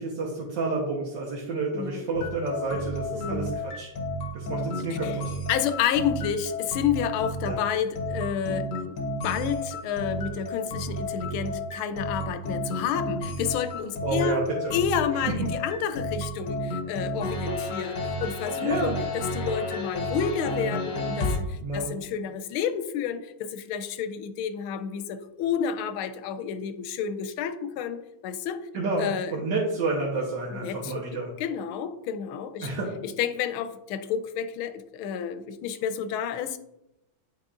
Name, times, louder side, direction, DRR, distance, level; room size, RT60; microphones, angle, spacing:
voice 1, 0.0-3.9 4.3-5.2 7.5-7.6 14.0-14.7 15.4-15.5 18.6-19.0 21.6-21.9 28.7-31.3 32.6-32.9, right 3 dB, 65° right, -4 dB, 1.5 m, -29 dB
voice 2, 1.7-2.1 3.1-3.5 5.0-5.1 5.5-8.7 9.2-14.4 14.7-28.6 29.0-29.4 30.5-31.0 31.4-32.7 33.0-36.6, left 8 dB, 90° left, 10 dB, 1.4 m, -30 dB
sound 1, 2.1-21.4, left 1 dB, 65° left, 1.6 m, -32 dB
9.6 x 4.2 x 2.4 m, 0.89 s
omnidirectional pair, 2.2 m